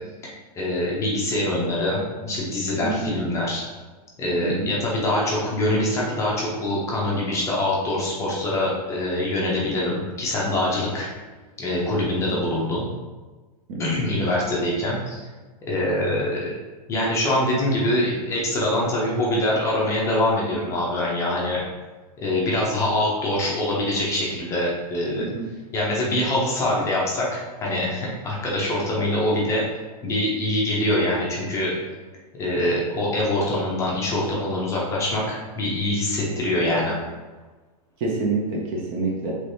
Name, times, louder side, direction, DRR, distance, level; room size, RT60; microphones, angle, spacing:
voice 1, 0.2-3.6 4.2-11.1 11.6-12.9 13.8-15.2 15.7-16.5 16.9-21.6 22.2-25.2 25.7-29.6 30.0-31.7 32.4-37.0, left 1 dB, 15° left, -4 dB, 0.6 m, -24 dB
voice 2, 4.4-4.7 13.7-13.8 25.2-25.4 38.0-39.4, right 3 dB, 30° right, -2 dB, 0.5 m, -27 dB
3.2 x 3.1 x 2.6 m, 1.3 s
hypercardioid pair, 150°, 21 cm